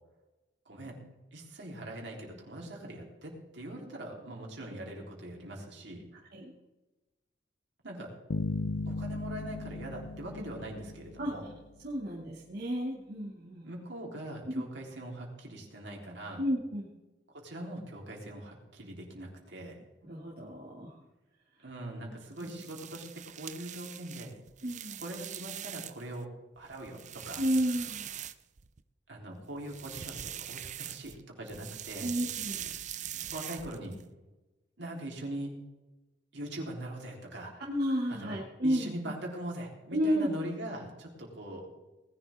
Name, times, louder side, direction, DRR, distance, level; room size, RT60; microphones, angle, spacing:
voice 1, 0.7-1.0 1.3-6.0 7.8-8.1 8.9-11.5 13.6-16.4 17.3-19.8 21.6-24.3 25.0-26.3 26.6-27.4 29.1-32.1 33.3-34.0 34.8-35.5 36.3-37.5 38.1-38.3 38.6-41.7, right 1 dB, 75° right, -1 dB, 3.7 m, -42 dB
sound 1, 8.3-11.7, left 2 dB, 70° left, 0.6 m, -37 dB
voice 2, 11.8-13.7 14.5-14.6 16.4-16.9 20.1-21.0 22.4-22.9 24.6-25.0 27.4-28.1 32.0-32.6 37.7-39.1 39.9-40.3, equal, 60° right, -4 dB, 2.4 m, -32 dB
sound 2, 22.3-26.2 26.6-28.8 29.6-31.2 31.5-34.0, right 11 dB, 40° right, 0.6 m, -42 dB
20.0 x 11.5 x 3.6 m, 1.1 s
head